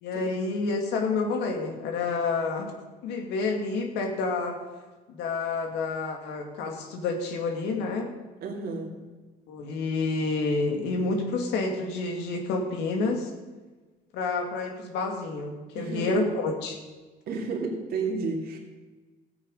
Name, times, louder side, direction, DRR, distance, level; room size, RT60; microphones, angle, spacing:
voice 1, 0.0-2.7 3.0-4.6 5.1-8.1 9.5-13.3 14.1-16.8, left 3 dB, 90° left, 3 dB, 2.1 m, -29 dB
voice 2, 8.4-9.0 15.7-16.2 17.3-18.6, right 4 dB, 65° right, 1 dB, 2.3 m, -31 dB
14.5 x 8.3 x 5.5 m, 1.3 s
cardioid pair, 110°, 17 cm